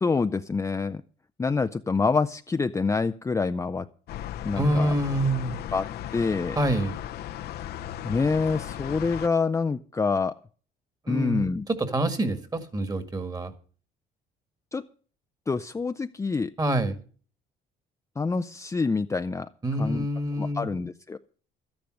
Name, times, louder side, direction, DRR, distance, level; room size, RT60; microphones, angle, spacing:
voice 1, 0.0-1.0 1.4-3.9 4.4-4.9 5.7-6.6 8.0-10.4 11.1-11.7 14.7-14.8 15.5-16.5 18.2-19.5 19.8-20.1 20.4-21.2, left 4 dB, 15° left, 8 dB, 0.5 m, -26 dB
sound 1, 4.1-9.3, left 11 dB, 70° left, 0.8 m, -36 dB
voice 2, 4.6-5.6 6.6-7.0 11.1-11.4 11.8-13.5 16.6-17.0 19.6-20.7, right 1 dB, 20° right, 10 dB, 2.0 m, -26 dB
13.0 x 10.5 x 6.4 m, 0.42 s
cardioid pair, 110°, 17 cm